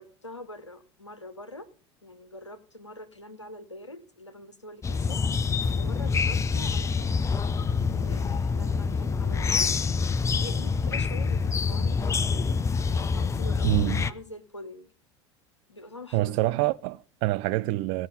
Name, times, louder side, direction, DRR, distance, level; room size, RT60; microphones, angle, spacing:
voice 1, 0.0-1.7 2.0-5.4 5.8-7.2 7.9-9.8 10.3-12.6 12.9-14.9 15.7-16.6, left 1 dB, 90° left, 0.9 m, -44 dB
sound 1, 4.8-14.1, left 5 dB, 20° left, 0.6 m, -26 dB
voice 2, 13.6-14.1 16.1-18.1, right 18 dB, 50° right, 0.6 m, -26 dB
17.0 x 5.7 x 5.5 m
figure-of-eight pair, 70°, 15 cm